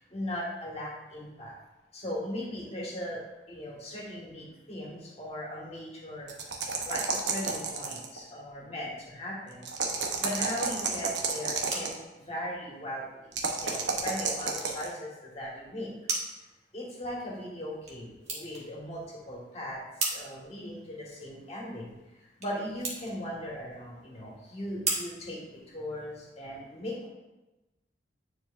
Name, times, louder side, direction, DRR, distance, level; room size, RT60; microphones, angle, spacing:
voice 1, 0.1-1.5 1.9-3.2 3.5-6.3 6.8-9.7 10.2-13.3 13.6-15.9 16.7-19.8 20.1-21.9 22.4-27.1, equal, 35° left, -4 dB, 1.8 m, -38 dB
sound 1, 6.3-8.2 9.6-12.0 13.3-14.9, right 5 dB, 85° right, 0.9 m, -31 dB
sound 2, 11.2-26.2, right 3 dB, 40° right, 1.4 m, -40 dB
9.3 x 4.5 x 2.6 m, 1.0 s
head